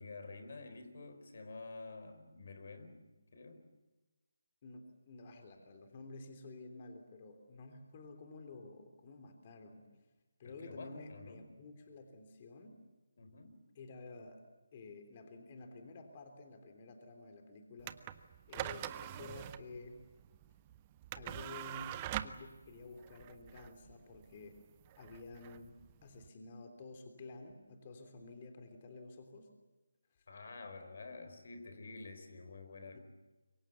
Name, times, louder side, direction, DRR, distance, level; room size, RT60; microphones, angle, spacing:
voice 1, 0.0-3.0 3.3-3.6 10.4-11.4 13.2-13.6 30.3-33.0, left 3 dB, 55° left, 8 dB, 4.4 m, -49 dB
voice 2, 4.6-9.9 10.4-12.8 13.7-14.4 14.7-18.0 18.5-20.0 21.1-24.6 25.0-25.7 26.0-29.5 30.2-30.3 32.9-33.0, left 3 dB, 35° left, 6 dB, 3.3 m, -51 dB
sound 1, 17.8-26.3, right 12 dB, 25° right, 0.8 m, -45 dB
26.5 x 23.5 x 7.1 m, 1.2 s
figure-of-eight pair, 155°, 0 cm